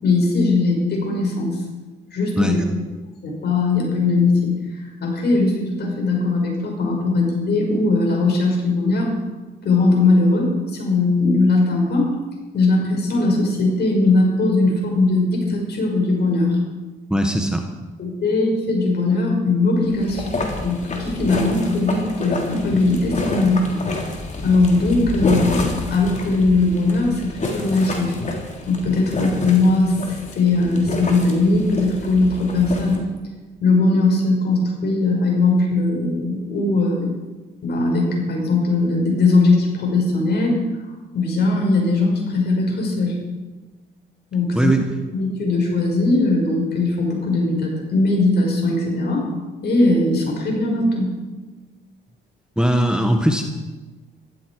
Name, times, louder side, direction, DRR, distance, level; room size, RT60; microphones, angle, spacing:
voice 1, 0.0-1.6 2.1-2.6 3.2-4.5 5.0-9.1 9.6-12.1 12.5-16.6 18.0-20.4 20.6-24.1 24.4-28.2 28.7-33.0 33.6-37.1 37.6-40.6 41.1-43.2 44.3-44.7 45.1-49.3 49.6-51.1, left 3 dB, 55° left, 0 dB, 5.7 m, -19 dB
voice 2, 2.4-2.7 17.1-17.7 44.5-44.8 52.6-53.4, right 1 dB, 5° right, 3 dB, 1.5 m, -19 dB
sound 1, 19.8-33.0, left 2 dB, 35° left, 3.5 m, -28 dB
15.5 x 13.5 x 4.8 m, 1.2 s
cardioid pair, 90°, 20 cm